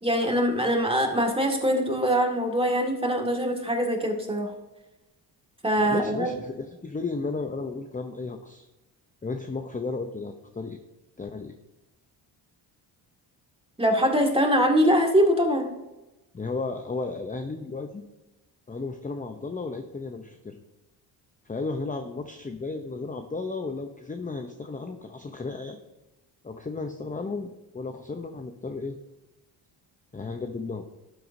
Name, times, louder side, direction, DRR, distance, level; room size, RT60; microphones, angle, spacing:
voice 1, 0.0-4.5 5.6-6.3 13.8-15.7, equal, 10° right, 1 dB, 2.1 m, -23 dB
voice 2, 5.8-8.7 9.2-10.8 11.2-11.5 16.3-18.0 18.7-20.6 21.5-25.9 26.4-29.0 30.1-30.8, left 3 dB, 15° left, 6 dB, 0.7 m, -34 dB
11.5 x 8.0 x 2.7 m, 1.0 s
cardioid pair, 75°, 48 cm